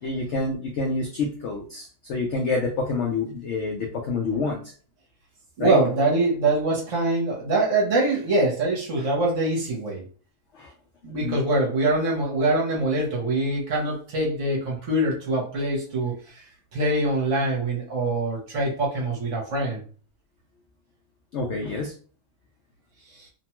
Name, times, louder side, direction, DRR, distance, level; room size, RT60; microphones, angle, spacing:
voice 1, 0.0-4.6 5.6-5.8 10.5-10.7 11.1-11.4 21.3-21.9, left 3 dB, 75° left, 1 dB, 0.6 m, -27 dB
voice 2, 5.6-10.0 11.0-16.4 16.7-19.8 23.1-23.3, right 2 dB, 55° right, -2 dB, 1.1 m, -24 dB
2.8 x 2.2 x 2.9 m, 0.40 s
omnidirectional pair, 1.8 m